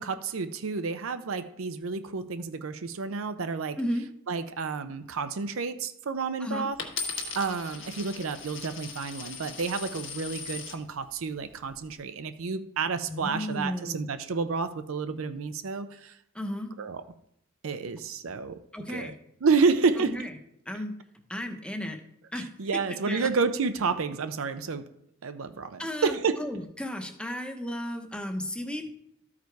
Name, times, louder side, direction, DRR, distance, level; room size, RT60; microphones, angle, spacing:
voice 1, 0.0-3.8 4.3-6.8 7.3-16.1 16.8-17.0 17.6-18.6 18.9-19.1 19.4-20.2 22.6-24.8 25.2-26.4, right 4 dB, 70° right, 10 dB, 0.6 m, -30 dB
Coin (dropping), 6.8-10.8 11.5-11.9, left 5 dB, 60° left, 1.3 m, -38 dB
voice 2, 13.1-14.1 16.3-16.7 18.7-19.1 20.0-20.3 20.7-20.9 21.3-22.0 22.3-22.5 23.0-23.3 25.8-28.9, left 1 dB, 5° left, 5 dB, 0.8 m, -34 dB
13.0 x 4.9 x 4.6 m, 0.78 s
head